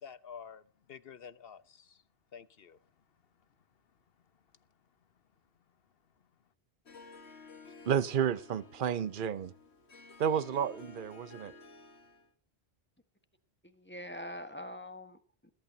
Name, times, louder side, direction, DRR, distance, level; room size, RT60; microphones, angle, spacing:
voice 1, 0.0-0.6 0.9-2.0 2.3-2.8, left 7 dB, 65° left, 15 dB, 1.1 m, -49 dB
Harp, 6.9-12.3, left 4 dB, 80° left, 1.9 m, -53 dB
voice 2, 7.9-9.5 10.2-11.5, right 8 dB, 55° right, 16 dB, 0.9 m, -31 dB
voice 3, 13.6-15.5, left 1 dB, 10° left, 9 dB, 1.5 m, -44 dB
20.5 x 12.0 x 2.9 m, 0.38 s
omnidirectional pair, 1.1 m